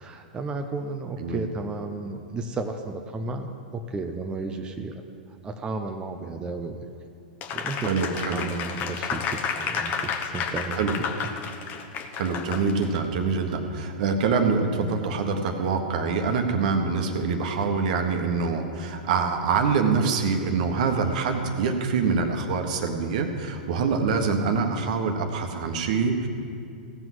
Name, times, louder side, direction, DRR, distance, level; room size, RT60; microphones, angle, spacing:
voice 1, 0.0-6.8 7.5-11.0, right 3 dB, 20° right, 4 dB, 0.8 m, -33 dB
Applause, 7.4-13.0, left 6 dB, 40° left, 1.1 m, -31 dB
voice 2, 7.9-8.4 10.8-10.9 12.2-26.3, right 5 dB, 60° right, 5 dB, 1.4 m, -25 dB
16.0 x 6.1 x 7.7 m, 2.4 s
hypercardioid pair, 100°, 5 cm